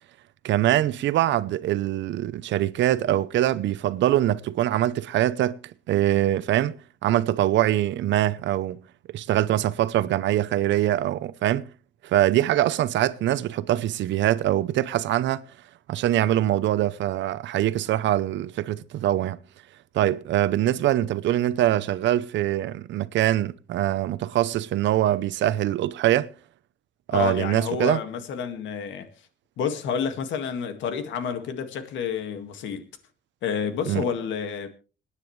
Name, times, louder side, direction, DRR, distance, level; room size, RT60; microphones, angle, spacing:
voice 1, 0.4-5.6 5.9-6.8 7.0-8.8 9.1-11.7 12.0-15.4 15.9-19.4 19.9-26.3 27.1-28.0 33.9-34.0, right 13 dB, 75° right, 0.8 m, -23 dB
voice 2, 27.1-29.1 29.6-32.9 33.4-34.7, left 7 dB, 80° left, 2.0 m, -29 dB
26.0 x 9.8 x 3.2 m
cardioid pair, 100°, 19 cm